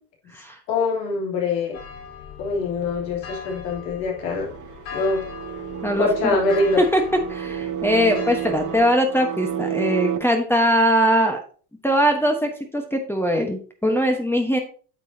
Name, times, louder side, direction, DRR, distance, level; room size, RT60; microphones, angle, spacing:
voice 1, 0.7-1.8 2.4-4.5 4.9-5.2 6.0-6.8, left 3 dB, 80° left, -1 dB, 3.2 m, -23 dB
sound 1, 1.7-8.8, left 6 dB, 60° left, 4.5 m, -40 dB
sound 2, 4.2-10.2, right 9 dB, 35° right, 1.1 m, -30 dB
voice 2, 7.3-11.4 11.8-14.6, equal, 5° left, 2 dB, 1.2 m, -21 dB
9.2 x 6.7 x 2.8 m, 0.41 s
hypercardioid pair, 90°, 49 cm